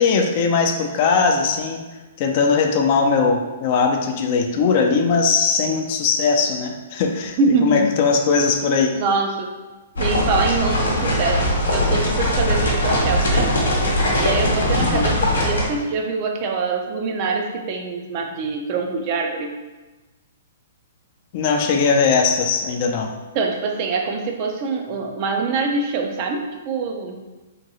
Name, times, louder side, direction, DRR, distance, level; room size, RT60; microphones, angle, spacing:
voice 1, 0.0-1.8 2.2-9.0 14.8-15.1 21.3-23.1, left 5 dB, 45° left, 3 dB, 0.4 m, -19 dB
voice 2, 7.4-7.9 9.0-9.5 10.0-13.6 14.2-19.5 23.3-27.2, right 4 dB, 40° right, 3 dB, 0.4 m, -24 dB
sound 1, 10.0-15.7, left 1 dB, 80° left, 0.7 m, -20 dB
2.9 x 2.6 x 2.7 m, 1.2 s
hypercardioid pair, 125°, 0 cm